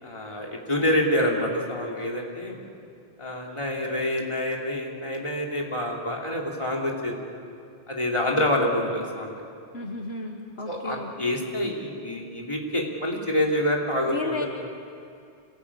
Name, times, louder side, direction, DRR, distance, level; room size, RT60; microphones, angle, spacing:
voice 1, 0.0-2.6 3.2-7.1 7.9-9.4 10.7-14.5, left 1 dB, 25° left, -1 dB, 3.0 m, -27 dB
voice 2, 9.7-11.1 14.1-14.5, left 4 dB, 65° left, 2 dB, 1.6 m, -34 dB
26.0 x 17.0 x 8.6 m, 2.5 s
omnidirectional pair, 1.1 m